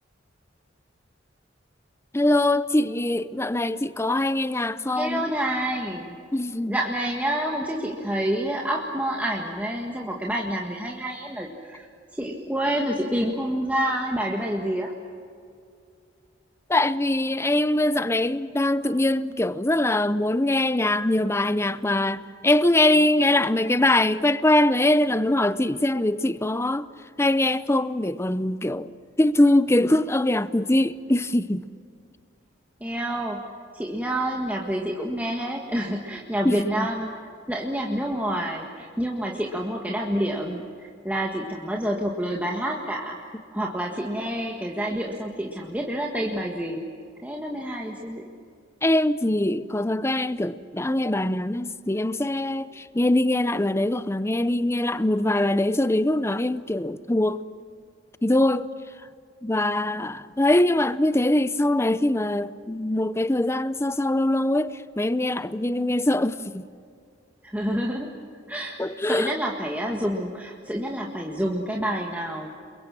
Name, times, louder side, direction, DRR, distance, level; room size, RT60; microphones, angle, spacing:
voice 1, 2.1-5.3 6.3-6.8 16.7-26.9 27.2-28.9 29.2-31.7 36.4-36.9 48.8-57.4 58.2-58.7 59.4-66.6 68.8-69.3, left 1 dB, 15° left, 0.6 m, -23 dB
voice 2, 5.0-6.2 6.7-11.9 12.1-15.0 32.8-33.4 33.7-37.1 37.5-43.2 43.5-46.8 47.2-48.3 67.4-68.1 68.5-72.5, right 1 dB, 10° right, 1.8 m, -28 dB
29.0 x 22.5 x 7.5 m
head